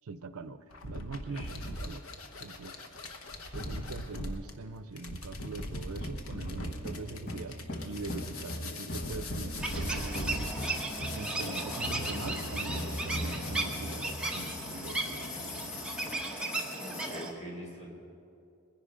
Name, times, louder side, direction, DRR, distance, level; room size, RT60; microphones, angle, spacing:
voice 1, 0.1-2.0 2.4-2.8 3.5-7.5 7.8-10.4 11.1-14.1 14.3-15.6, right 3 dB, 80° right, 13 dB, 0.6 m, -43 dB
sound 1, 0.7-17.2, left 2 dB, 75° left, 1.2 m, -41 dB
voice 2, 1.3-1.6 16.7-17.9, equal, 30° left, -1 dB, 3.0 m, -44 dB
sound 2, 5.9-16.2, equal, 50° left, 1.0 m, -40 dB
sound 3, 9.6-17.3, right 2 dB, 5° right, 1.1 m, -36 dB
20.5 x 10.5 x 5.0 m, 2.6 s
head